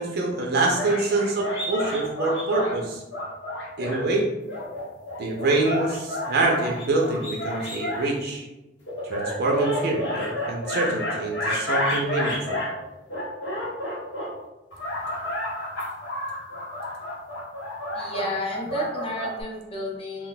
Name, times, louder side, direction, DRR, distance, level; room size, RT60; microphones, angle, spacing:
voice 1, 0.0-3.0 3.8-4.3 5.2-8.5 9.1-12.6, right 2 dB, 60° right, 0 dB, 0.5 m, -25 dB
sound 1, 0.8-2.7 3.1-4.0 4.5-8.1 8.9-12.7 13.1-14.3 14.7-19.4, left 1 dB, 85° left, 0.9 m, -30 dB
voice 2, 17.9-20.3, left 1 dB, 35° left, -2 dB, 0.6 m, -31 dB
2.3 x 2.1 x 3.9 m, 1.0 s
head